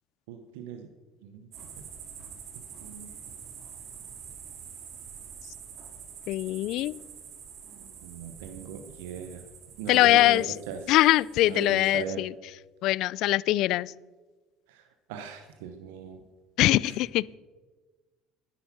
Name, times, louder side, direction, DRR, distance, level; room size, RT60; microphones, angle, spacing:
voice 1, 0.3-0.9 1.2-1.5 2.8-3.1 8.0-9.4 9.8-10.9 11.5-12.3 14.7-16.2 16.8-16.9, right 6 dB, 85° right, 0.9 m, -39 dB
sound 1, 1.5-12.0, right 7 dB, 60° right, 2.2 m, -46 dB
voice 2, 6.3-6.9 9.9-10.5 10.9-12.3 12.8-13.9 16.6-17.4, left 16 dB, 65° left, 0.3 m, -22 dB
10.0 x 9.7 x 6.0 m
supercardioid pair, 85°, 0 cm